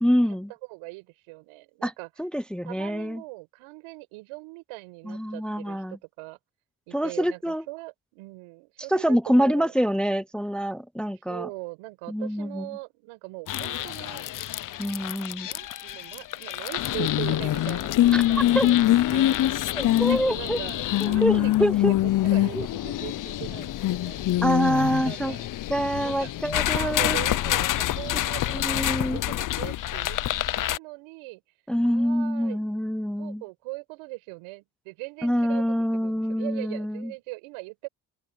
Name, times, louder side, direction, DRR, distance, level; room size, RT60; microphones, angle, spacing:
voice 1, 0.0-0.5 1.8-1.9 2.2-3.2 5.0-6.0 6.9-7.6 8.9-11.5 12.1-12.7 14.8-15.5 18.1-18.2 18.5-18.7 19.7-20.6 21.0-21.9 22.5-22.7 24.4-25.3 25.7-27.2 28.5-29.2 31.7-33.4 35.2-37.1, equal, ahead, 0.8 m, -26 dB
voice 2, 0.7-2.1 2.6-6.4 6.9-9.7 11.2-14.2 15.5-24.2 25.0-25.5 26.0-26.3 26.7-30.2 30.5-31.4 31.8-32.6 33.2-37.9, right 24 dB, 80° right, 6.8 m, -40 dB
sound 1, 13.5-30.8, left 14 dB, 40° left, 0.6 m, -25 dB
open air
supercardioid pair, 85°, 50 cm